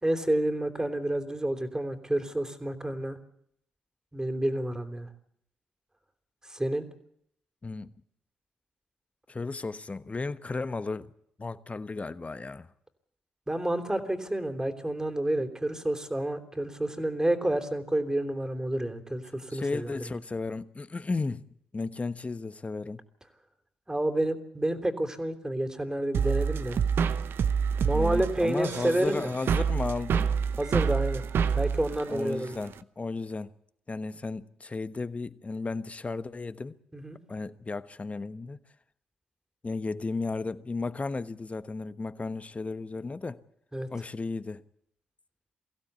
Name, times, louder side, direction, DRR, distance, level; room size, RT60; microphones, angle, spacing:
voice 1, 0.0-3.2 4.1-5.1 6.5-6.8 13.5-20.0 23.9-26.8 27.8-29.3 30.6-31.2 31.6-32.6 36.9-37.2 43.7-43.9, right 1 dB, 15° right, 3.3 m, -29 dB
voice 2, 9.3-11.1 11.4-12.7 19.5-21.4 21.7-23.0 27.9-30.3 32.1-33.5 33.9-36.8 37.3-38.6 39.6-43.4 43.9-44.6, left 3 dB, 30° left, 1.2 m, -34 dB
sound 1, 26.1-32.8, right 6 dB, 65° right, 0.9 m, -28 dB
23.0 x 16.0 x 8.2 m
hypercardioid pair, 45°, 4 cm